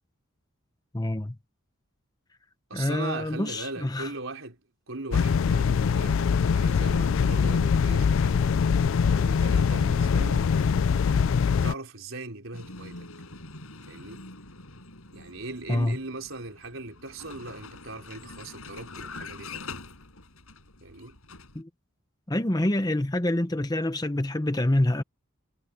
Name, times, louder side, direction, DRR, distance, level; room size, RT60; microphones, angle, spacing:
voice 1, 0.9-1.4 2.7-4.1 15.7-16.0 21.5-21.7 22.3-25.0, left 1 dB, 20° left, 0.9 m, -26 dB
voice 2, 2.7-4.6 4.9-8.5 9.2-10.7 11.5-13.1 13.9-14.2 15.1-19.8 20.8-21.1, right 2 dB, 65° right, 4.3 m, -39 dB
sound 1, 5.1-11.7, left 6 dB, 65° left, 0.4 m, -23 dB
Vehicle, 12.5-21.6, left 3 dB, 90° left, 5.6 m, -44 dB
head